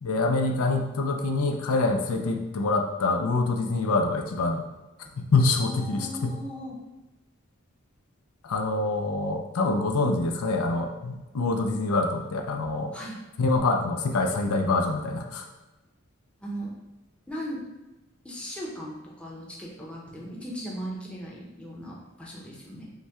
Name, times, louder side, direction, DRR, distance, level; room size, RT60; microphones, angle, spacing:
voice 1, 0.0-4.7 5.2-6.4 8.4-12.9 13.4-15.4, left 3 dB, 90° left, 3 dB, 0.5 m, -25 dB
voice 2, 5.6-6.8 12.9-13.2 16.4-16.7 17.3-17.6 18.2-22.9, equal, 5° left, -5 dB, 0.7 m, -38 dB
5.5 x 2.2 x 3.5 m, 1.1 s
head